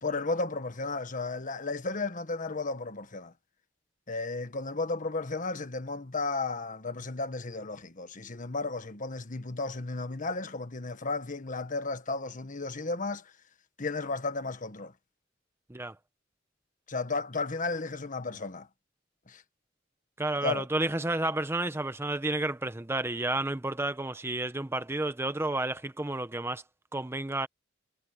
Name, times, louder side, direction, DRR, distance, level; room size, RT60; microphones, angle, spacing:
voice 1, 0.0-3.3 4.1-13.3 13.8-14.9 16.9-18.7 19.3-19.4 20.4-20.7, left 3 dB, 45° left, 1.5 m, -34 dB
voice 2, 20.2-26.6 26.9-27.5, right 2 dB, 15° right, 0.8 m, -31 dB
head